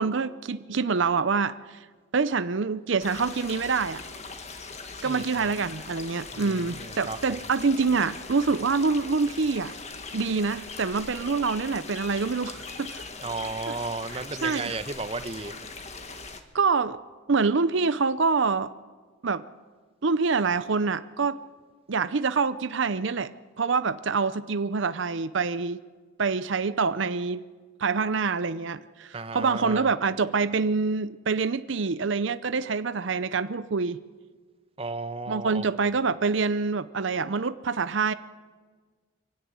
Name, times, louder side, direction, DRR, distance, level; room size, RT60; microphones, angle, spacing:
voice 1, 0.0-1.8 2.1-4.0 5.0-9.7 10.1-13.1 14.1-14.7 16.5-17.0 17.3-18.7 19.2-19.4 20.0-21.4 21.9-23.3 23.6-25.8 26.2-27.4 27.8-34.0 35.3-38.1, right 4 dB, 65° right, 13 dB, 0.6 m, -26 dB
sound 1, 3.0-16.4, left 4 dB, 35° left, 1.8 m, -41 dB
voice 2, 6.3-7.4 13.2-15.6 29.1-29.9 34.8-35.6, right 3 dB, 30° right, 10 dB, 1.0 m, -34 dB
25.0 x 16.5 x 9.7 m, 1.5 s
head